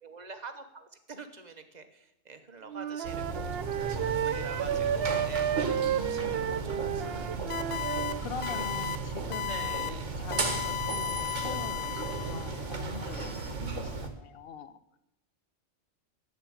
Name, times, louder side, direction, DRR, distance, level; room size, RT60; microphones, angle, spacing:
voice 1, 0.0-7.4 7.8-8.3 9.5-10.1, right 4 dB, 40° right, 8 dB, 1.2 m, -46 dB
Wind instrument woodwind instrument, 2.7-8.2, right 9 dB, 60° right, 0.8 m, -32 dB
sound 1, 3.0-14.1, right 4 dB, 85° right, 1.8 m, -35 dB
voice 2, 5.1-7.3 8.2-14.8, left 6 dB, 55° left, 13 dB, 1.0 m, -43 dB
sound 2, 7.5-8.1 8.4-9.0 9.3-9.9 10.3-12.6, left 10 dB, 80° left, 1.1 m, -35 dB
10.5 x 8.2 x 8.7 m, 0.86 s
omnidirectional pair, 1.2 m